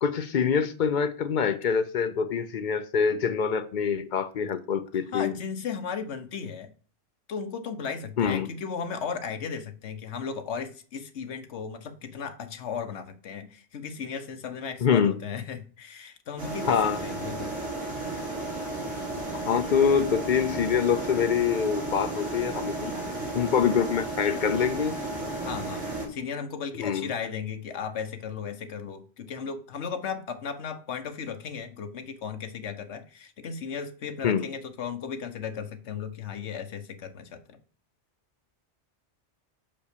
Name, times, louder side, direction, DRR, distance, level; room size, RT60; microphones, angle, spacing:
voice 1, 0.0-5.3 8.2-8.5 14.8-15.2 16.7-17.0 19.3-23.0 23.3-25.0 26.8-27.1 34.2-34.5, left 7 dB, 55° left, 0.6 m, -25 dB
voice 2, 5.1-6.7 7.3-17.6 25.4-37.6, left 6 dB, 75° left, 1.2 m, -35 dB
sound 1, 16.4-26.1, right 2 dB, 70° right, 2.6 m, -33 dB
5.4 x 5.4 x 6.7 m
omnidirectional pair, 1.2 m